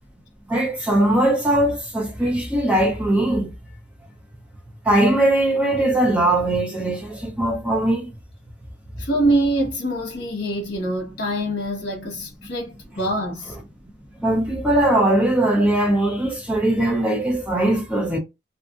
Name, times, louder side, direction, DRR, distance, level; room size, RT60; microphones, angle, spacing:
voice 1, 0.5-3.5 4.9-8.1 14.2-18.2, right 1 dB, 5° right, 0.5 m, -20 dB
voice 2, 9.0-13.6, right 1 dB, 60° left, 1.1 m, -24 dB
2.6 x 2.5 x 2.4 m
head